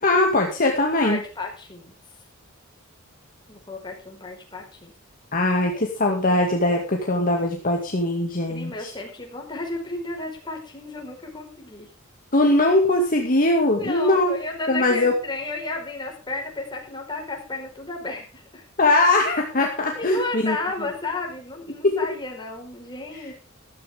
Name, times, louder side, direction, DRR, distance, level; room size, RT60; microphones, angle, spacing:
voice 1, 0.0-1.2 5.3-8.9 12.3-14.3 14.7-15.1 18.8-20.6 21.8-21.9, left 2 dB, 40° left, 1 dB, 2.3 m, -21 dB
voice 2, 1.0-1.9 3.5-4.9 8.5-11.9 13.8-18.6 19.9-23.3, left 2 dB, 20° left, 1 dB, 4.9 m, -33 dB
14.5 x 14.0 x 3.7 m, 0.34 s
head